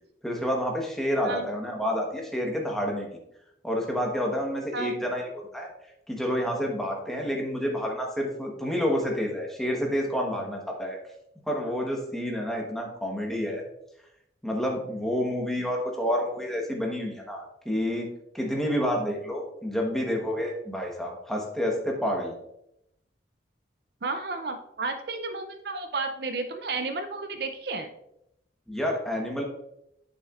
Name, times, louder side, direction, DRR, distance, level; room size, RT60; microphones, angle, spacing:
voice 1, 0.2-3.2 3.6-5.2 5.5-5.7 6.1-11.0 11.5-13.6 14.4-18.1 18.3-22.3 28.7-29.4, equal, ahead, 0 dB, 1.1 m, -29 dB
voice 2, 24.0-27.9, right 3 dB, 55° right, 7 dB, 0.5 m, -32 dB
9.1 x 6.4 x 2.4 m, 0.80 s
head